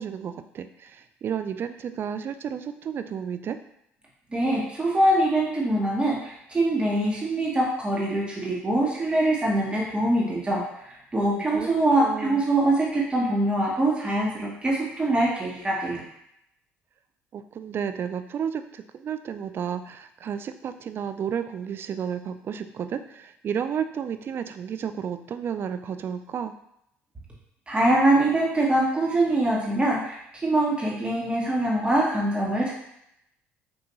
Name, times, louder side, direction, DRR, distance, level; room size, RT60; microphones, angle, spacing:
voice 1, 0.0-3.6 11.3-11.7 12.0-12.4 17.3-26.5, right 8 dB, 45° right, 10 dB, 0.4 m, -32 dB
voice 2, 4.3-16.0 27.7-32.7, right 1 dB, 20° right, -4 dB, 1.1 m, -23 dB
5.9 x 2.5 x 3.0 m, 0.78 s
supercardioid pair, 80°, 5 cm